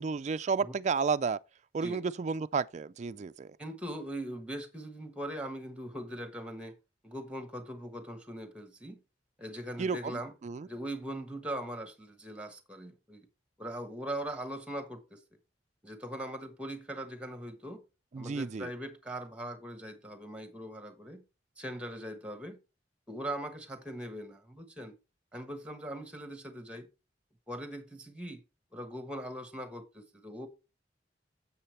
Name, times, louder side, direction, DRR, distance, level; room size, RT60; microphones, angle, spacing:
voice 1, 0.0-1.4 1.7-3.6 9.8-10.7 18.1-18.7, right 5 dB, 40° right, 0.4 m, -32 dB
voice 2, 3.6-6.7 7.0-9.0 9.4-10.3 10.6-13.3 13.6-15.2 15.8-17.8 18.2-21.2 21.6-22.6 23.1-24.9 25.3-26.9 27.5-28.4 28.7-30.5, right 1 dB, 5° right, 1.3 m, -40 dB
9.9 x 7.6 x 3.3 m
head